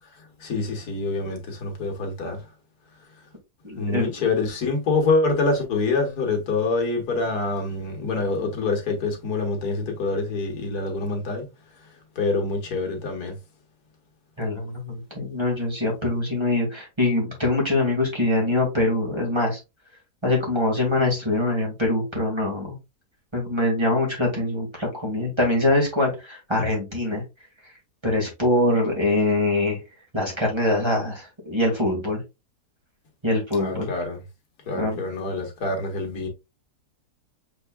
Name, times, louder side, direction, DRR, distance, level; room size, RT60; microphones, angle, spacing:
voice 1, 0.4-2.4 3.8-11.5 12.2-13.4 33.6-34.2 34.7-36.3, left 3 dB, 85° left, 1.9 m, -26 dB
voice 2, 3.6-4.1 14.4-19.6 20.2-22.8 23.3-27.2 28.0-29.8 30.1-32.2 33.2-33.9 34.7-35.0, left 2 dB, 20° right, 1.8 m, -23 dB
6.5 x 3.5 x 2.2 m
omnidirectional pair, 1.6 m